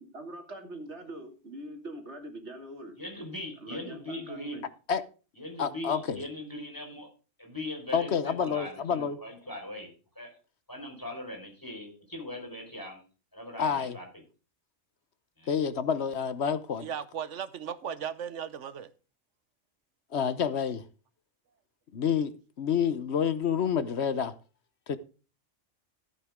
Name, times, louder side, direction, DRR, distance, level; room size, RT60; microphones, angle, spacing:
voice 1, 0.0-3.0 3.6-4.6, right 1 dB, 70° right, 2.9 m, -43 dB
voice 2, 3.0-4.6 5.4-7.1 7.4-10.4 10.7-13.0 13.3-14.1 15.4-15.5, left 1 dB, 15° left, 4.6 m, -40 dB
voice 3, 5.6-6.2 7.9-9.2 13.6-14.0 15.5-16.9 20.1-20.8 21.9-24.3 24.9-25.0, left 7 dB, 65° left, 1.1 m, -28 dB
voice 4, 16.8-18.9, right 8 dB, 85° right, 1.2 m, -36 dB
15.0 x 8.9 x 3.6 m
omnidirectional pair, 1.2 m